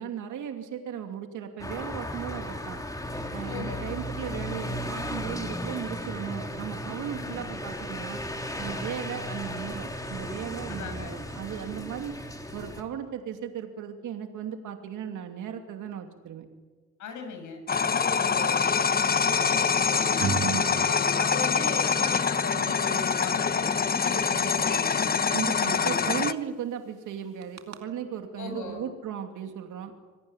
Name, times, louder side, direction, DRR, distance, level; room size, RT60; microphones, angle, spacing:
voice 1, 0.0-2.8 3.3-8.2 8.6-12.2 12.5-16.4 20.4-20.8 25.3-29.9, right 8 dB, 80° right, 5 dB, 2.8 m, -36 dB
sound 1, 1.6-12.8, left 1 dB, 10° left, 3.9 m, -35 dB
voice 2, 3.5-3.9 7.2-7.5 10.8-11.1 17.0-18.8 19.1-20.2 20.7-25.1 25.5-26.0 28.4-28.8, left 4 dB, 75° left, 5 dB, 7.6 m, -38 dB
sound 2, 17.7-26.3, left 5 dB, 30° left, 1.1 m, -25 dB
sound 3, 20.2-20.7 21.2-21.5 22.1-22.2 22.9-23.0 23.2-23.3 23.8-23.9 24.2-24.6 25.7-25.8 26.1-26.3 27.4-27.8, right 7 dB, 60° right, 2.3 m, -31 dB
26.5 x 18.0 x 9.9 m, 1.3 s
cardioid pair, 90°, 30 cm